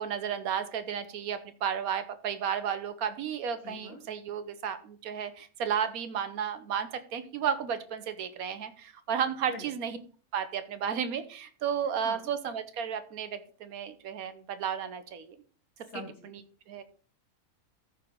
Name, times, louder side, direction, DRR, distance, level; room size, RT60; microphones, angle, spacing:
voice 1, 0.0-10.0 10.3-15.4 16.2-16.4 16.7-16.8, right 8 dB, 80° right, 11 dB, 1.3 m, -33 dB
voice 2, 3.6-4.0 9.5-9.7 12.0-12.3 15.9-16.3, left 3 dB, 90° left, -2 dB, 1.9 m, -43 dB
14.0 x 4.8 x 3.7 m, 0.42 s
omnidirectional pair, 1.5 m